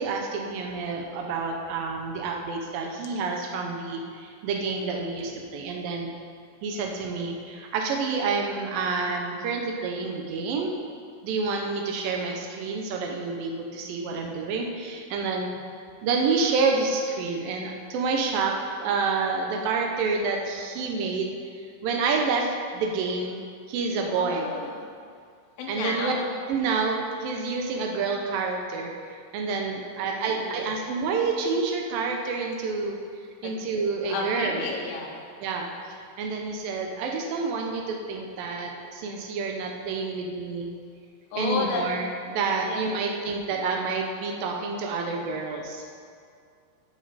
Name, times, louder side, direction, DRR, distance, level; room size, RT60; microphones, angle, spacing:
voice 1, 0.0-6.1 6.6-10.7 11.2-15.5 16.0-21.3 21.8-23.4 23.7-24.5 25.7-26.1 26.5-33.0 33.4-34.6 35.4-35.7 36.2-40.7 41.4-45.9, right 4 dB, 85° right, 1 dB, 2.0 m, -28 dB
voice 2, 24.0-24.8 25.6-26.3 29.7-30.7 33.4-33.5 34.0-35.1 41.3-41.9 42.3-42.9 43.3-43.6, left 4 dB, 85° left, -1 dB, 3.7 m, -33 dB
15.5 x 6.6 x 4.1 m, 2.3 s
omnidirectional pair, 5.2 m